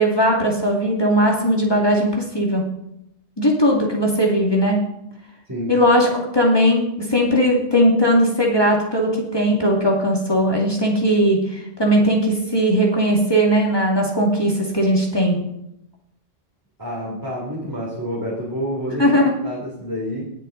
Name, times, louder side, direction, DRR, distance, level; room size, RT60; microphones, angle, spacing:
voice 1, 0.0-2.7 3.4-4.8 5.7-15.4 19.0-19.3, equal, 20° left, -2 dB, 2.2 m, -18 dB
voice 2, 16.8-20.2, equal, 15° right, -5 dB, 2.8 m, -28 dB
19.5 x 6.4 x 3.9 m, 0.81 s
omnidirectional pair, 1.2 m